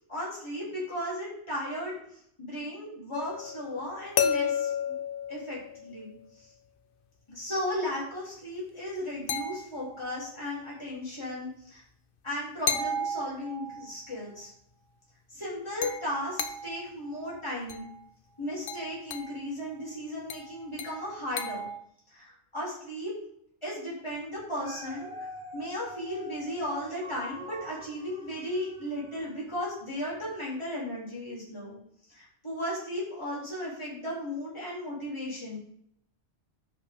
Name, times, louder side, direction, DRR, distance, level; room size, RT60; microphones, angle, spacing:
voice 1, 0.0-2.0 2.4-5.0 5.3-6.5 7.3-11.8 12.2-14.5 15.3-17.9 18.4-21.7 22.1-23.2 23.6-25.1 25.5-31.8 32.1-35.6, left 1 dB, 25° left, -8 dB, 3.7 m, -35 dB
sound 1, 3.1-6.2 9.3-10.1 12.7-13.9 15.8-16.9 17.7-18.0 18.7-19.4 20.3-21.8, left 5 dB, 55° left, 0.9 m, -33 dB
Dog, 24.4-29.7 30.2-30.3, equal, 40° right, 2.7 m, -45 dB
13.5 x 5.4 x 3.7 m, 0.68 s
omnidirectional pair, 1.2 m